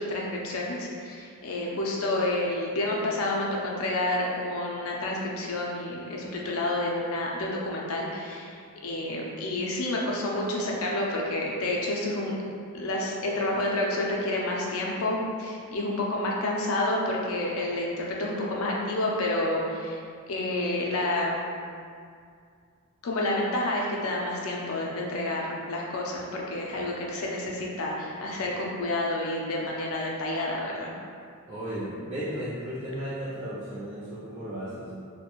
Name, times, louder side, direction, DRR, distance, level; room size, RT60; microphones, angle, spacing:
voice 1, 0.0-8.5 8.8-12.4 12.7-20.0 20.3-21.4 23.0-30.9, left 1 dB, 65° left, -2 dB, 0.4 m, -29 dB
voice 2, 31.5-34.9, equal, 30° right, -11 dB, 0.4 m, -35 dB
2.4 x 2.1 x 2.9 m, 2.2 s
head